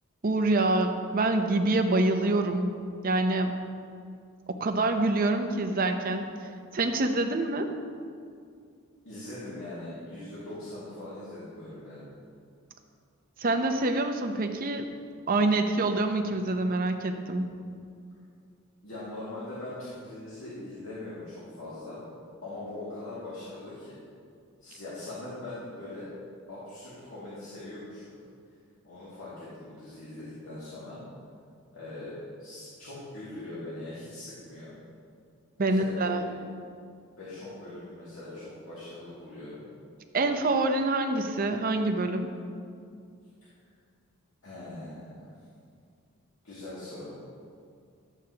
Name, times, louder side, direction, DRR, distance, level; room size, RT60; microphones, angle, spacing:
voice 1, 0.2-2.7 3.0-3.6 4.6-6.3 6.7-7.7 13.4-14.9 15.3-17.5 35.6-36.3 40.1-42.3, right 2 dB, 40° right, 6 dB, 0.6 m, -26 dB
voice 2, 9.1-12.1 18.8-22.0 22.4-24.0 24.6-26.1 26.5-28.1 28.8-31.0 31.7-34.8 35.6-36.4 37.2-39.6 44.4-45.3 46.4-47.1, left 2 dB, 75° left, -10 dB, 2.2 m, -41 dB
12.5 x 8.1 x 2.9 m, 2.3 s
head